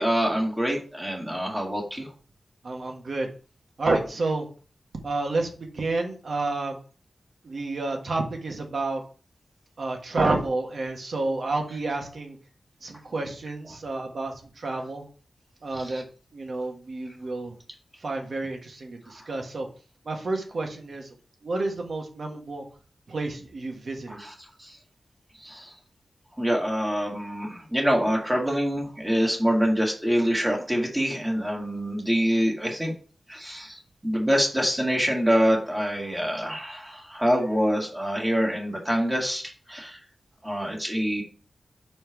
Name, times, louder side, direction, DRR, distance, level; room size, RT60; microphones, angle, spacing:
voice 1, 0.0-2.1 15.7-16.0 19.2-19.3 24.1-24.3 24.6-24.8 25.4-25.7 26.4-32.9 33.3-40.0 40.4-41.2, equal, 10° right, 0 dB, 1.8 m, -25 dB
voice 2, 2.6-3.3 3.8-4.4 5.0-6.8 7.4-9.0 9.8-12.4 12.8-15.0 15.6-16.0 16.3-17.5 18.0-19.7 20.0-21.1 21.4-22.6 23.1-24.2, right 2 dB, 65° right, 2 dB, 1.5 m, -29 dB
5.6 x 4.4 x 4.6 m, 0.39 s
wide cardioid pair, 125°, 0 cm